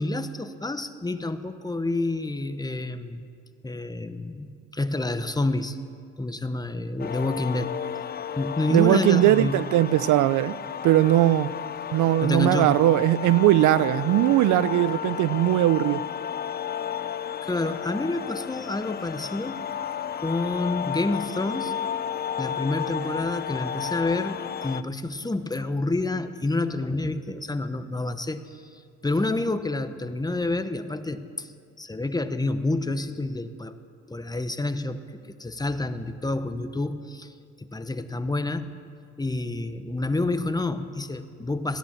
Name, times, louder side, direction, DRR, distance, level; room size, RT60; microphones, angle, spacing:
voice 1, 0.0-3.3 3.6-5.8 6.2-7.7 8.4-9.6 12.2-12.8 17.4-19.6 20.2-21.7 22.4-33.7 34.1-35.0 35.4-38.8 39.2-41.8, left 2 dB, 15° left, 0.8 m, -28 dB
sound 1, 7.0-24.8, left 9 dB, 35° left, 0.4 m, -33 dB
voice 2, 8.7-10.6 10.8-11.5 11.9-16.0, right 14 dB, 75° right, 0.5 m, -20 dB
16.5 x 10.5 x 7.5 m
cardioid pair, 90°, 30 cm